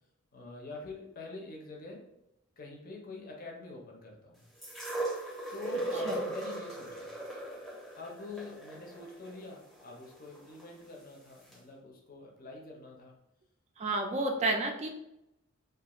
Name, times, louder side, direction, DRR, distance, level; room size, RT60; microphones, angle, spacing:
voice 1, 0.3-2.1 2.6-4.4 5.5-7.1 8.0-13.2, left 3 dB, 45° left, -1 dB, 0.6 m, -45 dB
sound 1, 4.6-10.7 11.5-11.6, right 2 dB, ahead, 0.7 m, -38 dB
voice 2, 13.8-14.9, right 2 dB, 35° right, 4 dB, 0.3 m, -30 dB
2.4 x 2.3 x 2.9 m, 0.85 s
head